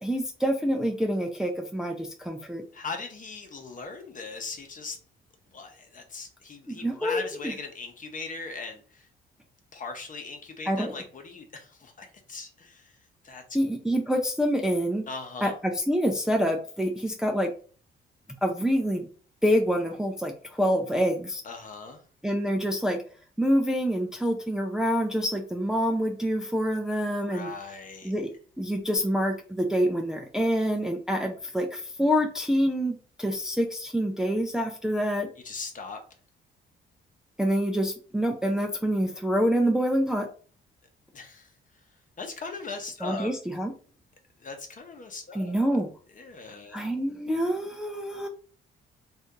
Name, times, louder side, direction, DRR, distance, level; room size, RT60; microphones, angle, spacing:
voice 1, 0.0-2.6 6.7-7.5 10.7-10.9 13.5-15.1 15.4-17.5 18.4-19.1 19.4-21.4 22.2-23.0 23.4-27.5 28.0-28.3 28.6-35.3 37.4-40.3 43.0-43.7 45.3-45.9 46.7-48.3, equal, 5° right, 2 dB, 0.5 m, -26 dB
voice 2, 2.7-5.0 5.5-9.1 9.7-12.9 13.2-13.4 15.1-15.6 21.4-22.0 27.1-28.1 35.4-36.0 41.1-41.5 42.2-43.3 44.4-45.8 46.2-46.8, left 4 dB, 40° left, 4 dB, 0.9 m, -39 dB
2.7 x 2.6 x 3.6 m, 0.40 s
cardioid pair, 90°, 20 cm